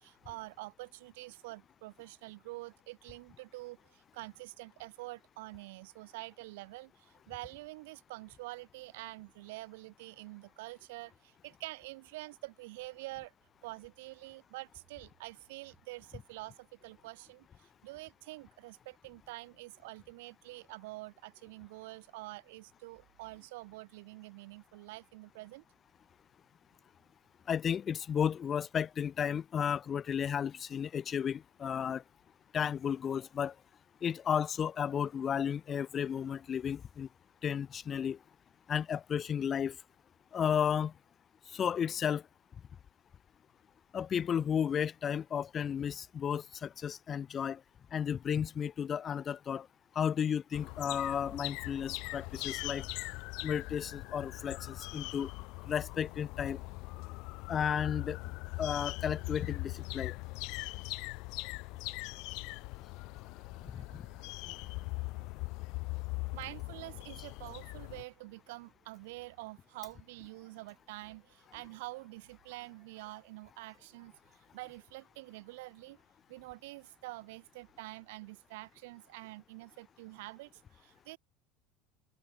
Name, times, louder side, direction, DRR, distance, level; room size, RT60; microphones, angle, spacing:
voice 1, 0.0-13.3 13.6-25.6 63.3-63.5 63.8-64.0 64.9-65.3 66.3-76.0 76.3-81.2, right 22 dB, 80° right, 2.2 m, -47 dB
voice 2, 27.5-32.0 32.5-33.5 34.0-37.1 37.4-38.2 38.7-39.8 40.3-40.9 41.5-42.2 43.9-47.6 47.9-49.7 50.0-52.8 53.4-55.3 55.7-56.6 57.5-58.2 58.6-60.2 63.7-64.0, left 8 dB, 25° left, 0.6 m, -33 dB
sound 1, 50.5-68.0, left 27 dB, 55° left, 1.0 m, -41 dB
supercardioid pair, 155°, 0 cm